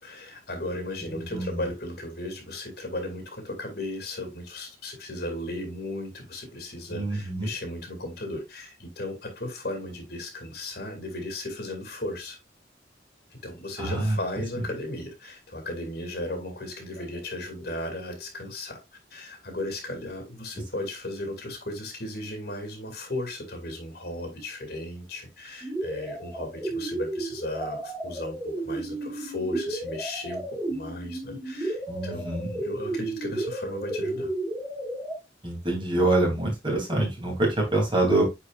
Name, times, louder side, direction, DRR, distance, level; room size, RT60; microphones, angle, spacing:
voice 1, 0.0-12.4 13.3-18.8 19.1-34.3, left 1 dB, 55° left, 2.4 m, -36 dB
voice 2, 1.2-1.6 6.9-7.5 13.8-14.2 31.9-32.5 35.4-38.2, right 2 dB, 25° right, 2.9 m, -25 dB
sound 1, 25.6-35.2, right 2 dB, 10° right, 1.8 m, -33 dB
9.1 x 4.8 x 2.4 m
head